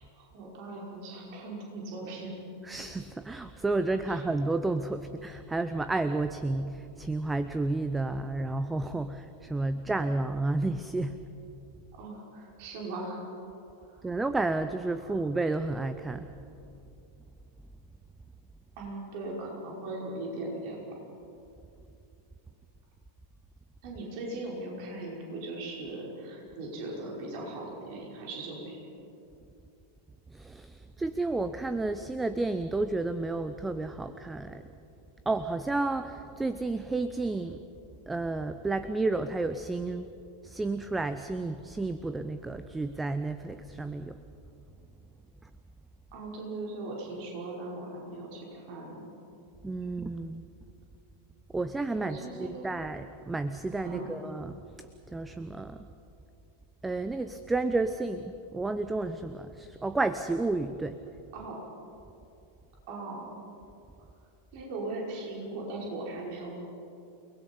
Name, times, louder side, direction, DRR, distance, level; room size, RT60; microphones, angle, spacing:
voice 1, 0.0-2.3 4.1-4.2 11.9-13.3 13.8-14.0 15.0-15.1 18.8-20.9 23.8-28.8 46.1-49.0 51.9-52.8 53.8-54.1 61.3-61.6 62.9-63.4 64.5-66.5, right 2 dB, 45° right, -2 dB, 5.4 m, -39 dB
voice 2, 2.6-11.3 14.0-16.3 30.3-34.7 35.3-37.6 38.1-40.1 40.4-44.2 45.4-45.5 49.6-50.5 51.5-54.6 55.1-55.9 56.8-61.0, right 2 dB, 10° right, 11 dB, 0.7 m, -31 dB
29.0 x 20.0 x 5.5 m, 2.7 s
figure-of-eight pair, 90°, 0 cm